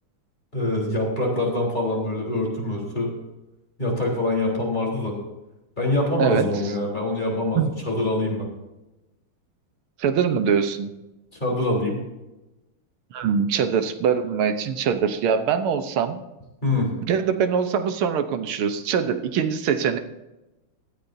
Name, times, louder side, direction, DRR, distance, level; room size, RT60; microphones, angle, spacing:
voice 1, 0.5-3.1 3.8-5.2 5.8-7.6 7.9-8.5 11.4-12.0 16.6-16.9, left 2 dB, 20° left, -2 dB, 3.9 m, -24 dB
voice 2, 10.0-10.9 13.1-16.2 17.1-20.0, right 7 dB, 85° right, 9 dB, 1.8 m, -23 dB
17.0 x 13.5 x 2.7 m, 1.0 s
omnidirectional pair, 2.3 m